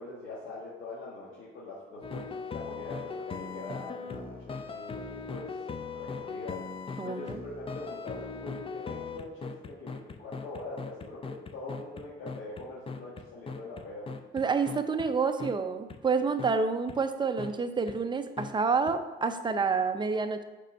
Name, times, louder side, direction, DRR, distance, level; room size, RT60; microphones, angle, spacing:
voice 1, 0.0-5.5 5.9-6.6 7.0-14.1, left 2 dB, 80° left, -7 dB, 1.6 m, -43 dB
sound 1, 2.0-15.1 15.4-15.5 15.9-16.0 16.4-16.5 16.9-17.0 17.4-17.5 17.9-18.0 18.4-18.5 18.9-19.0, left 4 dB, 30° left, 0.5 m, -39 dB
voice 2, 7.0-7.4 14.3-20.4, right 5 dB, 25° right, 8 dB, 0.5 m, -28 dB
5.2 x 4.4 x 5.3 m, 1.2 s
cardioid pair, 90°, 20 cm